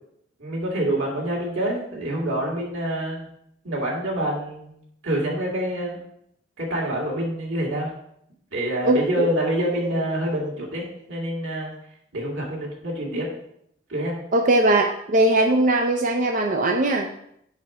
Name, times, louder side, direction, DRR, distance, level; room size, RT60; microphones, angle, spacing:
voice 1, 0.4-3.3 3.6-6.0 6.6-7.9 8.5-11.7 12.1-13.3 13.9-14.2, right 1 dB, 90° right, -2 dB, 2.3 m, -27 dB
voice 2, 8.8-9.3 14.3-17.1, right 2 dB, 45° right, 1 dB, 0.6 m, -20 dB
4.9 x 4.6 x 5.9 m, 0.72 s
head